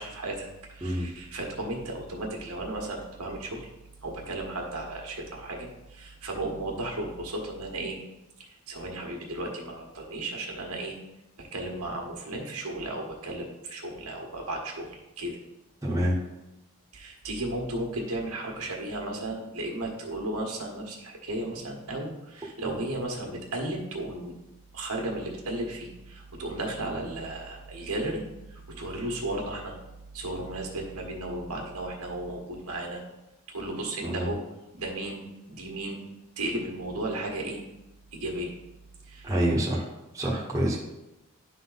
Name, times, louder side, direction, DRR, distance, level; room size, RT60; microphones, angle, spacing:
voice 1, 0.0-3.7 4.0-8.0 8.4-11.0 11.4-15.4 16.9-24.3 24.7-28.2 28.5-29.7 30.1-33.0 33.5-34.4 34.7-36.0 36.4-37.6 38.1-38.5 39.1-39.3, right 1 dB, 90° right, 1 dB, 1.5 m, -34 dB
voice 2, 15.8-16.2 34.0-34.3 39.2-39.9 40.1-40.8, equal, 15° right, -5 dB, 1.2 m, -26 dB
10.5 x 3.8 x 4.0 m, 0.96 s
head